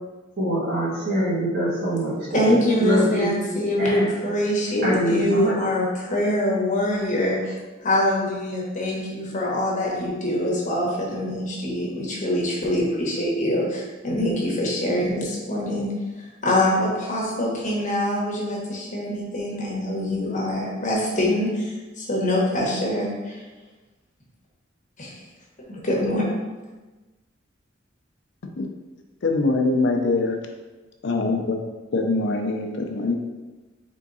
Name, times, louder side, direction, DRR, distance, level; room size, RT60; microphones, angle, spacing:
voice 1, 0.4-3.3 3.8-4.1 4.8-5.6, equal, 55° right, -5 dB, 1.4 m, -24 dB
voice 2, 2.3-15.9 16.2-23.4 25.0-25.2 25.7-26.2, left 1 dB, 40° left, -3 dB, 1.1 m, -24 dB
voice 3, 29.2-30.4 31.0-31.6 31.9-33.2, left 3 dB, 60° left, 3 dB, 0.5 m, -23 dB
3.6 x 3.6 x 4.0 m, 1.2 s
head